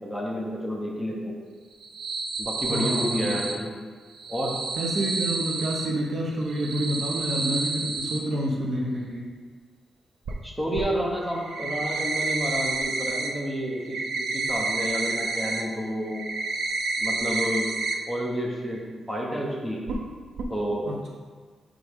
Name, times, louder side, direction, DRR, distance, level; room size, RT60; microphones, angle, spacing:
voice 1, 0.0-1.3 2.4-3.7 4.3-4.5 10.4-16.2 17.0-17.7 18.1-18.8 19.1-19.8 20.5-20.9, equal, ahead, -3 dB, 1.0 m, -30 dB
sound 1, 1.7-3.5 4.1-5.9 6.4-8.2 10.2-10.3 10.7-10.8 11.3-13.3 13.6-15.6 16.0-17.9 18.3-18.4 18.8-18.9 19.9-20.0 20.4-20.5, right 3 dB, 70° right, 0.6 m, -29 dB
voice 2, 2.7-3.3 4.8-9.3 20.9-21.1, right 1 dB, 45° right, -1 dB, 0.8 m, -28 dB
8.0 x 3.8 x 3.6 m, 1.5 s
wide cardioid pair, 150°, 0 cm